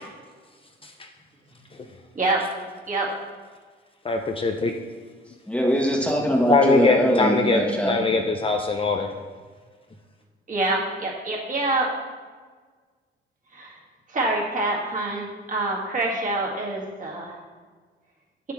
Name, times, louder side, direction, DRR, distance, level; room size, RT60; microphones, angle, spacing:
voice 1, 4.0-4.7 6.5-9.1, left 3 dB, 25° left, 4 dB, 0.5 m, -22 dB
voice 2, 5.5-8.0, equal, 5° left, -1 dB, 1.2 m, -22 dB
voice 3, 10.5-11.9 13.5-13.7 14.1-17.4, right 2 dB, 40° right, -3 dB, 1.9 m, -26 dB
7.2 x 7.0 x 3.2 m, 1.5 s
cardioid pair, 90°, 20 cm